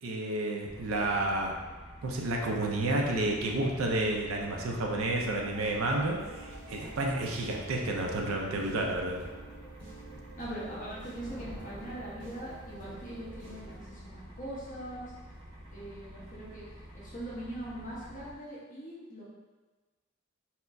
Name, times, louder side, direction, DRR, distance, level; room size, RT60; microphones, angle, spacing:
voice 1, 0.0-1.5 2.0-6.4 6.7-9.2, right 2 dB, 80° right, 1 dB, 0.5 m, -30 dB
sound 1, 0.7-18.3, equal, 20° right, 0.8 m, -49 dB
sound 2, 5.4-13.9, right 2 dB, 60° right, 0.9 m, -50 dB
voice 2, 10.4-15.1 15.7-16.6 16.9-19.2, right 1 dB, 40° left, -8 dB, 1.0 m, -41 dB
Thunder, 10.9-13.2, equal, 60° left, 1.5 m, -50 dB
4.2 x 2.1 x 2.6 m, 1.3 s
head